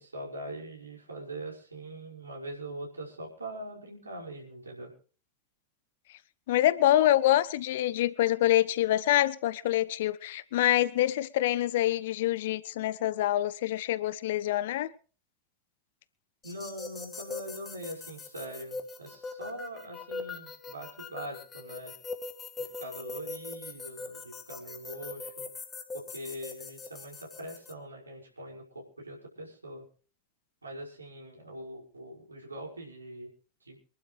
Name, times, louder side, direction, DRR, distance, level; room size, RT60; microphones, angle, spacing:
voice 1, 0.0-4.9 16.4-21.9 22.6-25.5 25.9-29.8 30.6-33.3 33.6-33.8, right 1 dB, 80° right, 5.6 m, -42 dB
voice 2, 6.5-14.9, left 14 dB, 55° left, 1.0 m, -26 dB
sound 1, 16.4-27.7, left 4 dB, 20° left, 2.3 m, -42 dB
27.0 x 11.5 x 3.3 m
figure-of-eight pair, 90°, 0 cm